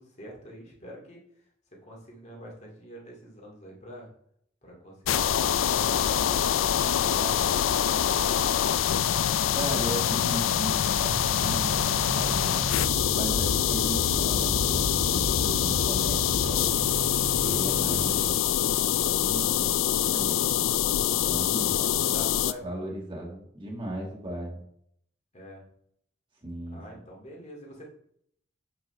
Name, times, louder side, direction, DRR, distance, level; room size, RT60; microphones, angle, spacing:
voice 1, 0.0-1.4 1.8-4.1 4.6-9.0 17.4-17.9 21.7-22.7 25.3-25.6 26.7-27.8, equal, 35° left, -1 dB, 2.3 m, -45 dB
sound 1, 5.1-22.5, left 10 dB, 90° left, 0.4 m, -25 dB
voice 2, 9.5-12.7 13.1-16.7 17.4-18.3 19.0-20.4 21.2-21.7 22.6-24.6 26.4-26.8, right 1 dB, 25° right, -3 dB, 1.7 m, -36 dB
sound 2, 10.8-18.8, right 5 dB, 45° right, 0.3 m, -37 dB
sound 3, 13.1-15.1, left 1 dB, 5° left, 1.5 m, -56 dB
7.9 x 6.0 x 3.3 m, 0.68 s
head